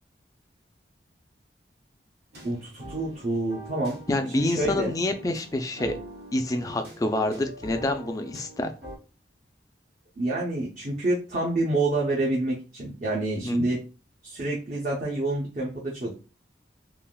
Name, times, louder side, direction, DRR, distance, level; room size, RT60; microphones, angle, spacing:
sound 1, 2.3-9.0, right 1 dB, 60° right, 1.1 m, -43 dB
voice 1, 2.4-4.0 4.4-5.0 10.2-13.8 14.2-16.1, right 2 dB, 45° right, -4 dB, 0.6 m, -27 dB
voice 2, 4.1-5.9 6.3-8.7 13.4-13.7, left 2 dB, 20° left, 6 dB, 0.3 m, -27 dB
3.4 x 2.4 x 2.2 m, 0.33 s
head